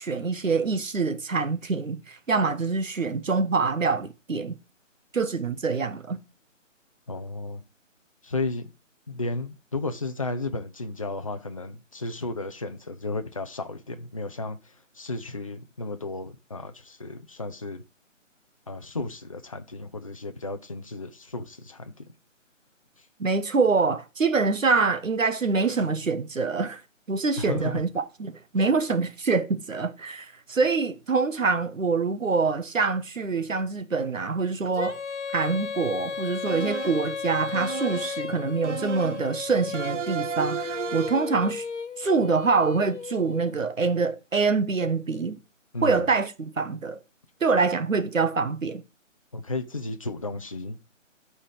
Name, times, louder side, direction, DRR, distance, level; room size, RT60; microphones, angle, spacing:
voice 1, 0.0-4.6 5.1-6.2 23.2-26.8 27.1-35.0 35.3-41.6 42.0-45.4 45.8-47.0 47.4-48.8, right 4 dB, 85° right, 1.3 m, -25 dB
voice 2, 7.1-7.6 8.2-8.7 9.1-17.8 18.7-22.1 27.4-27.8 45.7-46.1 49.3-50.8, left 2 dB, 30° left, 0.5 m, -33 dB
Female singing, 34.7-43.6, left 6 dB, 65° left, 1.0 m, -35 dB
sound 1, 36.5-37.1 37.5-38.2 38.6-39.3 39.7-41.4, right 8 dB, 65° right, 0.8 m, -33 dB
12.0 x 4.2 x 4.9 m
figure-of-eight pair, 155°, 38 cm